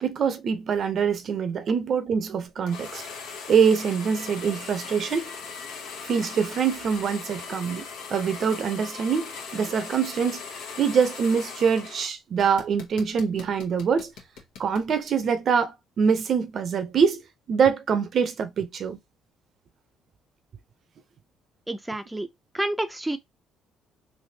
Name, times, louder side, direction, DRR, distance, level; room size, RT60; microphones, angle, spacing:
voice 1, 0.0-3.0 3.5-5.3 6.0-7.8 8.1-10.4 10.8-14.1 14.6-17.2 17.5-19.0, right 6 dB, 55° right, 0.6 m, -24 dB
sound 1, 2.7-12.1 12.4-14.9, left 5 dB, 80° left, 1.0 m, -39 dB
voice 2, 21.7-22.3 22.5-23.2, right 1 dB, 10° right, 0.5 m, -29 dB
3.3 x 2.6 x 2.8 m
supercardioid pair, 70°, 0 cm